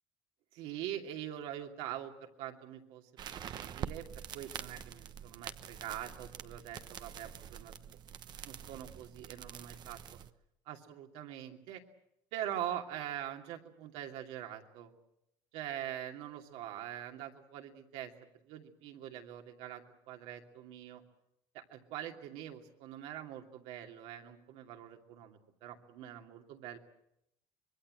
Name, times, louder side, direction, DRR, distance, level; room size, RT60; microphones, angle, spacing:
voice 1, 0.5-3.0 3.6-8.0 8.4-10.0 10.7-11.8 12.3-14.9 15.5-18.1 18.4-21.0 21.5-26.8, right 11 dB, 75° right, 3 dB, 2.7 m, -43 dB
sound 1, 3.2-10.3, right 9 dB, 45° right, 1.0 m, -46 dB
25.5 x 22.0 x 7.7 m, 0.81 s
cardioid pair, 125°, 10 cm